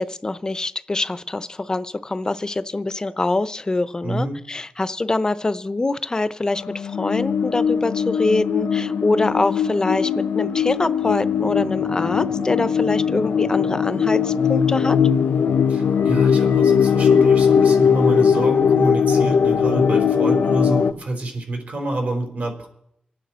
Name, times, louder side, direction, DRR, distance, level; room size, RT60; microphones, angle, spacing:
voice 1, 0.0-15.0, left 2 dB, 25° left, 13 dB, 0.6 m, -24 dB
voice 2, 4.0-4.4 15.7-22.7, right 2 dB, 60° right, 2 dB, 3.7 m, -27 dB
sound 1, 6.6-20.9, left 7 dB, 85° left, 0.6 m, -19 dB
26.5 x 9.3 x 4.3 m, 0.78 s
wide cardioid pair, 135°, 3 cm